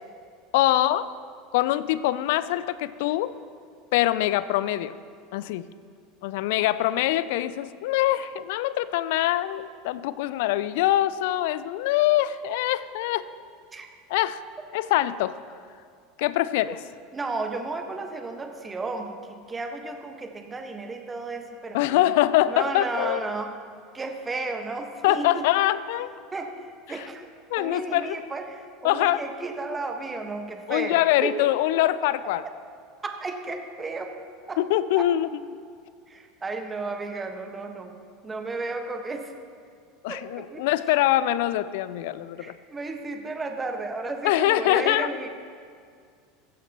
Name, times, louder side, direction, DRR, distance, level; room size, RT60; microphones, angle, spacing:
voice 1, 0.5-1.1 1.5-3.3 3.9-4.9 5.3-5.7 6.2-13.3 14.1-14.4 14.7-15.4 16.2-16.8 21.7-23.2 25.0-26.1 26.9-27.1 27.5-28.2 28.8-29.2 30.7-32.4 34.6-35.6 40.0-42.5 44.2-45.1, left 14 dB, 60° left, 16 dB, 0.4 m, -24 dB
voice 2, 17.1-22.1 22.5-23.5 23.9-25.4 26.3-27.3 27.6-31.5 33.0-34.1 34.5-34.6 35.0-35.1 36.1-37.9 38.2-39.3 40.1-40.7 42.4-45.3, right 3 dB, 20° right, 5 dB, 1.4 m, -33 dB
15.5 x 13.5 x 3.0 m, 2.2 s
figure-of-eight pair, 75°, 0 cm